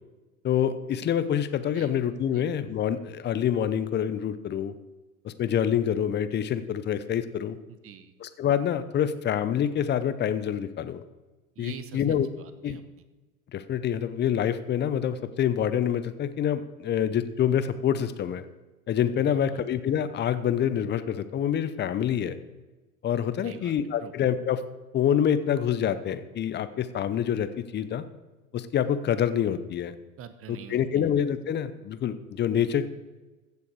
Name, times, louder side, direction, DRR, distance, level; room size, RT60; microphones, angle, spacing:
voice 1, 0.4-4.7 5.2-7.6 8.2-11.0 11.6-12.3 12.6-12.8 13.5-18.4 18.9-22.4 23.0-24.6 24.9-28.0 28.5-29.9 30.5-32.9, left 9 dB, 25° left, 13 dB, 0.7 m, -26 dB
voice 2, 7.7-8.1 11.5-12.8 19.3-19.6 23.4-23.7 24.0-24.1 30.2-31.1, right 8 dB, 30° right, 11 dB, 1.1 m, -45 dB
15.0 x 7.0 x 4.8 m, 1.2 s
hypercardioid pair, 90°, 43 cm